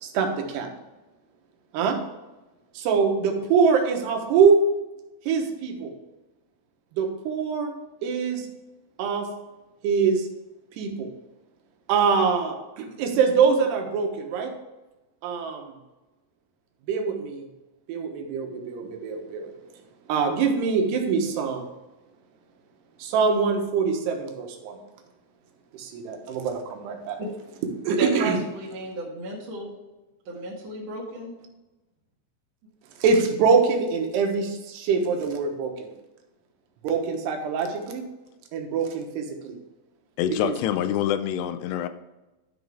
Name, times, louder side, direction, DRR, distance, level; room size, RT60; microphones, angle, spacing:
voice 1, 0.0-0.7 1.7-2.0 2.7-4.6 5.3-5.9 6.9-7.7 8.0-8.5 9.0-9.3 9.8-10.3 10.8-11.1 11.9-14.5 15.2-15.7 16.9-17.4 17.9-19.5 20.1-21.6 23.0-24.8 25.7-27.2 27.8-28.4 33.0-35.9 36.8-38.0 38.5-39.6 40.4-40.5, right 5 dB, 80° right, 3.2 m, -24 dB
voice 2, 27.2-29.7 30.3-31.3, right 1 dB, 50° right, 2.3 m, -33 dB
voice 3, 40.2-41.9, left 10 dB, 90° left, 2.8 m, -26 dB
11.5 x 6.2 x 3.5 m
omnidirectional pair, 4.7 m